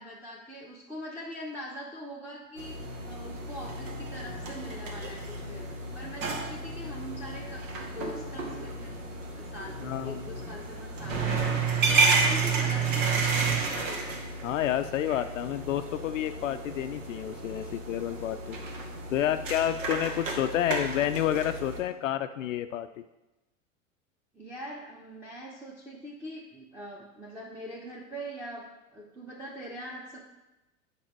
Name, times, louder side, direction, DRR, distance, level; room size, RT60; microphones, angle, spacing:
voice 1, 0.0-2.8 3.0-9.0 9.3-14.3 24.3-30.4, equal, 5° right, -6 dB, 1.1 m, -42 dB
sound 1, 2.6-21.8, right 4 dB, 65° right, 1.5 m, -31 dB
sound 2, 2.8-11.7, left 4 dB, 80° right, 2.1 m, -48 dB
voice 2, 9.8-10.2 14.4-18.6 19.1-22.9, left 11 dB, 65° left, 10 dB, 0.5 m, -29 dB
9.4 x 5.4 x 4.6 m, 1.0 s
figure-of-eight pair, 90°, 42 cm